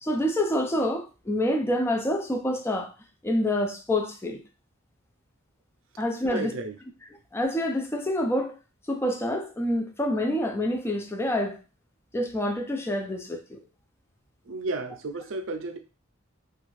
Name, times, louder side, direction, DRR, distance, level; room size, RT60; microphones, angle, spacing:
voice 1, 0.0-2.9 3.2-4.4 6.0-6.5 7.3-8.6 8.9-11.6 12.1-13.6, left 1 dB, 10° left, 0.3 m, -27 dB
voice 2, 6.2-6.8 14.4-15.8, right 2 dB, 70° right, 0.5 m, -33 dB
2.5 x 2.4 x 3.1 m
head